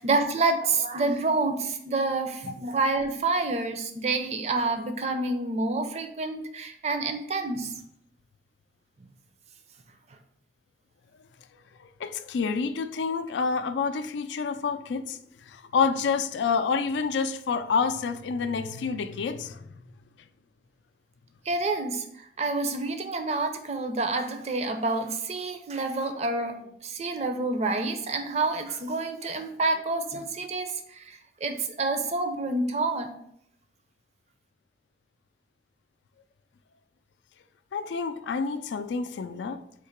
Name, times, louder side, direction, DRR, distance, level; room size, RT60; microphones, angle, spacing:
voice 1, 0.0-7.7 21.5-33.1, right 3 dB, 35° right, 0.5 m, -28 dB
voice 2, 11.8-19.7 37.7-39.6, left 5 dB, 90° left, 0.4 m, -28 dB
3.8 x 2.8 x 4.4 m
head